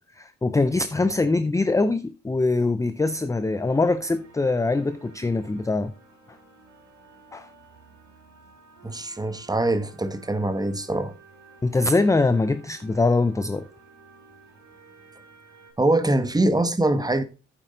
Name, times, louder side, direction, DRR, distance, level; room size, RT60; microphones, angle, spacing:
voice 1, 0.2-5.9 7.3-7.5 11.6-13.7, left 3 dB, 10° left, 0.5 m, -23 dB
sound 1, 3.0-15.7, right 4 dB, 70° right, 4.7 m, -52 dB
voice 2, 8.8-11.1 15.8-17.2, right 2 dB, 15° right, 1.1 m, -23 dB
9.1 x 7.4 x 3.8 m
cardioid pair, 90°, 30 cm